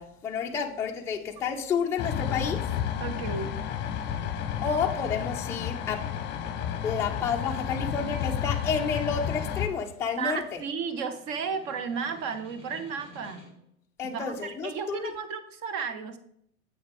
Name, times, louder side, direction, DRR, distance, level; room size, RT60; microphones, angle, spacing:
voice 1, 0.0-2.7 4.6-6.1 6.8-10.6 14.0-15.1, left 6 dB, 5° left, 0.5 m, -30 dB
sound 1, 2.0-9.7, left 9 dB, 25° left, 0.9 m, -31 dB
voice 2, 3.0-3.5 10.2-13.5 14.0-16.2, right 5 dB, 40° right, 1.1 m, -33 dB
Snare drum, 9.3-13.8, left 1 dB, 15° right, 2.8 m, -53 dB
8.2 x 6.4 x 3.5 m
hypercardioid pair, 115°, 43 cm